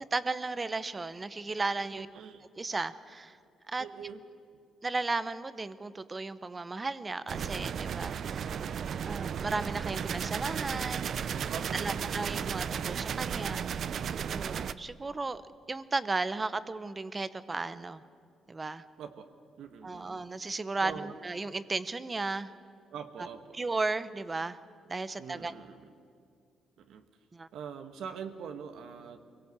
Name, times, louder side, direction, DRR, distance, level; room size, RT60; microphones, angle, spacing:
voice 1, 0.1-2.1 2.6-3.4 3.7-3.9 4.8-8.5 9.1-11.1 11.7-13.9 14.3-15.4 15.7-18.0 18.5-18.8 19.8-22.5 23.5-24.6 24.9-25.5 27.3-27.5, right 3 dB, 25° right, 15 dB, 0.9 m, -35 dB
voice 2, 1.9-2.5 3.8-4.2 11.5-12.1 19.0-19.3 19.6-20.2 20.8-21.2 22.9-23.6 25.2-25.9 26.8-27.0 27.5-29.2, right 7 dB, 75° right, 7 dB, 1.4 m, -43 dB
sound 1, 7.3-14.7, right 7 dB, 60° right, 0.6 m, -34 dB
24.0 x 17.5 x 8.2 m, 2.3 s
cardioid pair, 90°, 0 cm